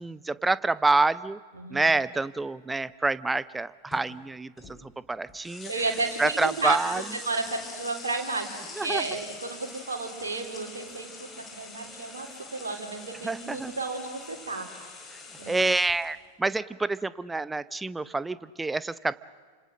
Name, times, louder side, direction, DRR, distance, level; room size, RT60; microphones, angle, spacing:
voice 1, 0.0-1.4 1.7-5.7 6.2-7.0 8.8-9.0 13.2-13.7 15.5-19.1, right 3 dB, 10° right, 17 dB, 0.8 m, -27 dB
voice 2, 1.5-2.0 5.7-14.7 15.4-15.6, right 3 dB, 70° right, 1 dB, 3.7 m, -33 dB
sound 1, 1.8-2.1 3.9-4.0 4.6-4.8 5.2-16.1, left 4 dB, 20° left, 4.7 m, -44 dB
29.5 x 26.0 x 7.5 m, 1.6 s
figure-of-eight pair, 90°, 0 cm